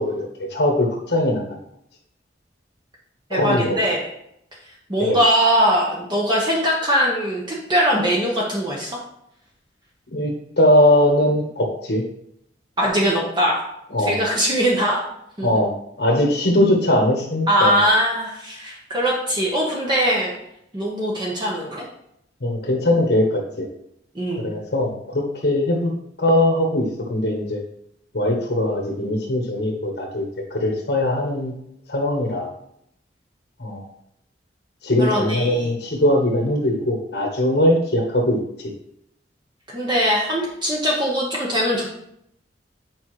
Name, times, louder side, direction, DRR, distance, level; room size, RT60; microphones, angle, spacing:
voice 1, 0.0-1.4 3.3-3.8 5.1-5.2 10.1-12.0 13.9-14.2 15.4-15.7 16.0-17.8 22.4-23.7 24.4-25.9 26.2-27.6 28.1-31.5 31.9-32.5 33.6-33.8 34.8-38.4, left 1 dB, 65° left, 0 dB, 1.2 m, -20 dB
voice 2, 3.3-4.1 4.9-9.0 12.8-13.6 14.0-15.0 15.4-15.5 17.5-20.3 20.7-21.8 24.1-24.5 35.0-35.7 39.7-42.0, equal, 25° right, -4 dB, 1.1 m, -21 dB
9.2 x 5.3 x 3.2 m, 0.76 s
head